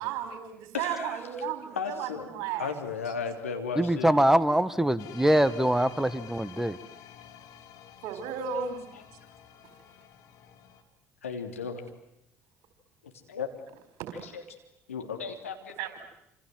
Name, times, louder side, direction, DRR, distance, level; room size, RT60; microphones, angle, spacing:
voice 1, 0.0-2.7 8.0-8.8 14.0-14.3 15.8-16.0, right 8 dB, 65° right, 8 dB, 4.5 m, -34 dB
voice 2, 0.7-1.2 1.8-2.3 2.6-4.1 11.2-11.8 13.3-13.5 14.2-14.4 14.9-15.9, left 6 dB, 85° left, 4 dB, 3.0 m, -35 dB
voice 3, 3.7-6.8, right 1 dB, 5° right, 15 dB, 1.6 m, -23 dB
sound 1, 5.0-10.8, left 9 dB, 60° left, 2.9 m, -50 dB
28.5 x 26.5 x 7.7 m, 0.82 s
hypercardioid pair, 60°, 7 cm